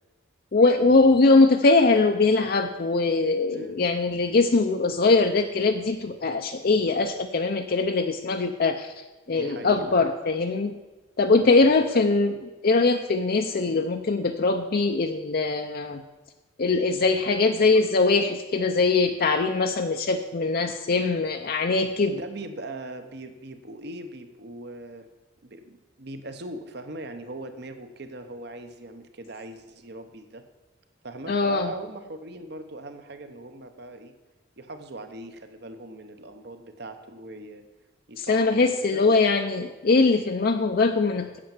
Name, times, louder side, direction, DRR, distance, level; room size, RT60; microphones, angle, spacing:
voice 1, 0.5-8.9 9.3-10.8 11.2-12.4 12.6-16.0 16.6-22.2 31.3-31.7 38.2-41.4, left 3 dB, 50° left, 5 dB, 0.5 m, -22 dB
voice 2, 9.3-9.8 11.5-12.2 17.6-17.8 22.1-25.1 25.4-30.5 31.0-34.1 34.6-37.6 38.1-39.1, right 2 dB, 60° right, 8 dB, 1.0 m, -40 dB
8.7 x 7.7 x 7.2 m, 1.2 s
head